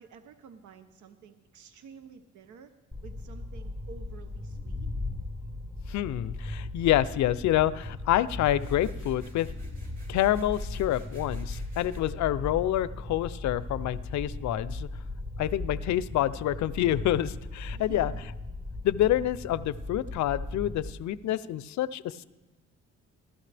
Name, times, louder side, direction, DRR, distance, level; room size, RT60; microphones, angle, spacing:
voice 1, 0.0-2.7 3.0-4.9 17.7-18.3, right 6 dB, 75° right, 9 dB, 0.8 m, -50 dB
sound 1, 2.9-20.9, left 2 dB, 15° right, 1.1 m, -38 dB
sound 2, 4.4-10.0, left 3 dB, 5° left, 0.8 m, -42 dB
voice 2, 5.9-9.5 10.1-14.9 15.4-18.1 18.8-22.2, left 13 dB, 70° left, 15 dB, 0.5 m, -27 dB
sound 3, 8.4-12.0, right 1 dB, 30° right, 3.2 m, -57 dB
15.5 x 12.5 x 3.4 m, 1.1 s
cardioid pair, 90°, 30 cm